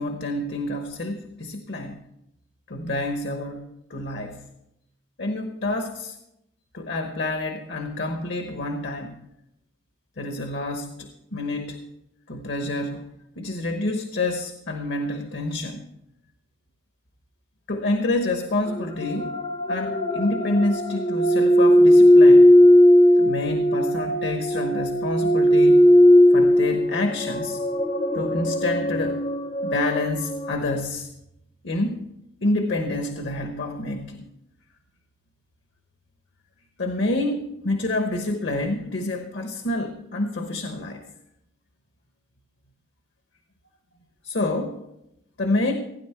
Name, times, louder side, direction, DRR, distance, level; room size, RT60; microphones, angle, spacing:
voice 1, 0.0-2.0 2.7-3.6 3.9-4.5 5.2-6.2 6.7-9.2 10.2-11.8 12.3-13.0 13.4-15.8 17.7-19.4 19.7-22.6 23.2-25.9 26.3-27.6 28.1-29.2 29.6-31.1 31.6-32.1 32.4-34.3 36.8-41.0 44.2-44.8 45.4-45.7, left 2 dB, 60° left, 5 dB, 1.1 m, -28 dB
sound 1, 18.7-30.5, left 1 dB, 30° left, 0.6 m, -18 dB
16.5 x 9.8 x 4.5 m, 0.85 s
head